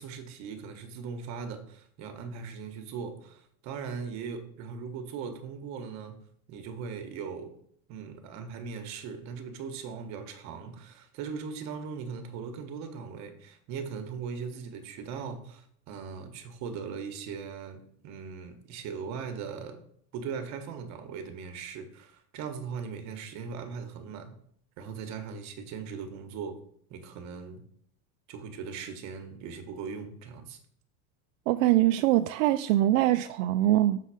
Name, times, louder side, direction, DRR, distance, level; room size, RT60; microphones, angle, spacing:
voice 1, 0.0-6.2 6.5-7.5 7.9-19.8 20.1-24.4 24.8-26.6 26.9-27.6 28.3-30.6, right 6 dB, 40° right, 1.3 m, -39 dB
voice 2, 31.5-34.0, right 14 dB, 75° right, 0.5 m, -23 dB
6.5 x 3.9 x 6.3 m
cardioid pair, 165°, 41 cm